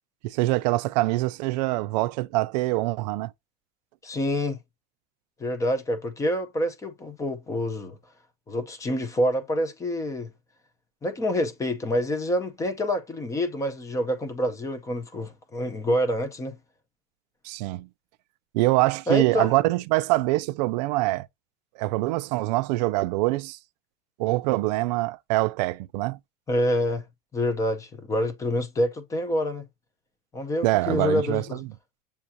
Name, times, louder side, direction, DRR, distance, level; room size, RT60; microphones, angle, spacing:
voice 1, 0.2-3.3 17.4-17.9 18.5-21.3 21.8-23.6 24.2-26.2 30.6-31.7, right 19 dB, 75° right, 0.4 m, -24 dB
voice 2, 4.0-4.6 5.4-8.0 8.5-10.3 11.0-16.6 19.1-19.5 26.5-27.0 27.3-29.6 30.3-31.6, left 1 dB, 15° left, 0.6 m, -27 dB
6.9 x 2.4 x 2.7 m
cardioid pair, 155°, 21 cm